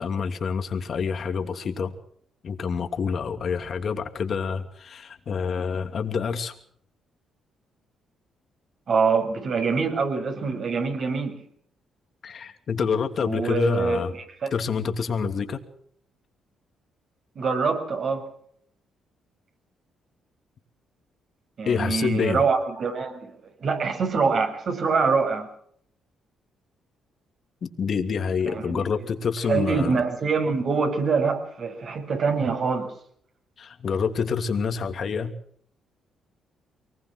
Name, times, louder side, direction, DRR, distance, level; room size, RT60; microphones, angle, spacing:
voice 1, 0.0-2.0 2.4-6.5 12.2-14.1 14.5-15.6 21.6-22.4 27.6-30.0 33.6-35.3, left 6 dB, 50° left, 6 dB, 2.8 m, -27 dB
voice 2, 8.9-11.4 13.2-14.5 17.4-18.3 21.6-25.5 28.5-28.8 29.5-32.9, right 5 dB, 55° right, 3 dB, 7.4 m, -25 dB
24.0 x 20.0 x 6.4 m, 0.64 s
cardioid pair, 90°, 0 cm